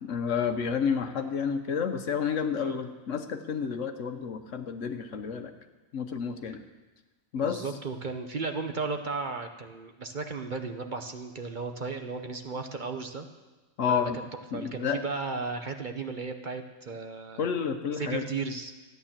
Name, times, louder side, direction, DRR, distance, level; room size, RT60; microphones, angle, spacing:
voice 1, 0.0-5.5 5.9-6.6 7.3-7.6 13.8-14.2 14.5-15.0 17.4-18.3, left 7 dB, 65° left, 7 dB, 1.2 m, -30 dB
voice 2, 7.4-13.3 13.9-14.2 14.5-17.5 18.0-18.7, right 4 dB, 40° right, 6 dB, 0.8 m, -35 dB
14.0 x 9.5 x 7.4 m, 1.2 s
omnidirectional pair, 1.4 m